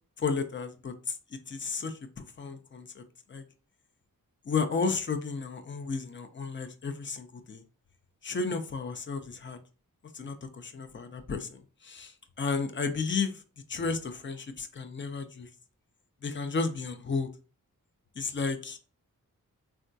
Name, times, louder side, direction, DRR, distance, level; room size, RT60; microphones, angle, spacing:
voice 1, 0.2-3.0 3.3-3.4 4.5-7.6 8.2-9.6 10.1-13.4 13.7-15.5 16.2-17.3 18.2-18.9, left 4 dB, 35° left, 8 dB, 0.5 m, -33 dB
3.4 x 2.3 x 2.6 m, 0.36 s
cardioid pair, 65°, 35 cm